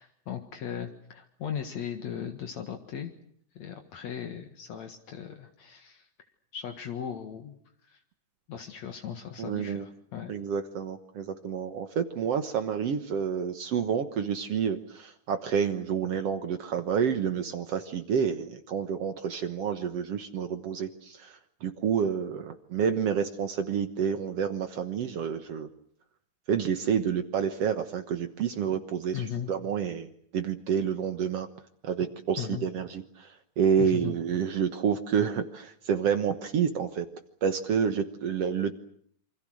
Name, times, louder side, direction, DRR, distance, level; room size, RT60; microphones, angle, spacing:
voice 1, 0.0-3.1 3.6-6.1 6.5-8.0 8.5-10.3 29.1-29.5 32.4-32.6 33.8-34.2, left 8 dB, 70° left, 5 dB, 2.9 m, -37 dB
voice 2, 9.4-9.9 10.3-25.7 26.5-31.5 31.8-37.1 37.4-38.7, right 7 dB, 60° right, 8 dB, 2.2 m, -29 dB
27.5 x 25.0 x 6.4 m, 0.65 s
omnidirectional pair, 3.4 m